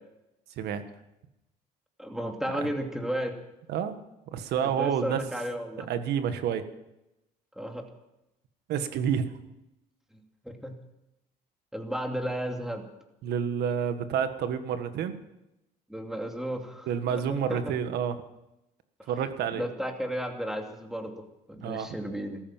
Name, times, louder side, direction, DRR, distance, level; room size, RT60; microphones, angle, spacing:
voice 1, 2.0-3.4 4.8-5.9 7.6-7.8 10.4-10.8 11.7-12.9 15.9-17.7 19.5-22.4, equal, 5° right, 4 dB, 2.6 m, -33 dB
voice 2, 4.3-5.2 5.9-6.7 8.7-9.3 13.2-15.1 16.9-18.2 19.1-19.6 21.6-22.0, right 8 dB, 75° right, 10 dB, 1.6 m, -29 dB
14.0 x 13.5 x 7.3 m, 0.91 s
cardioid pair, 110°, 17 cm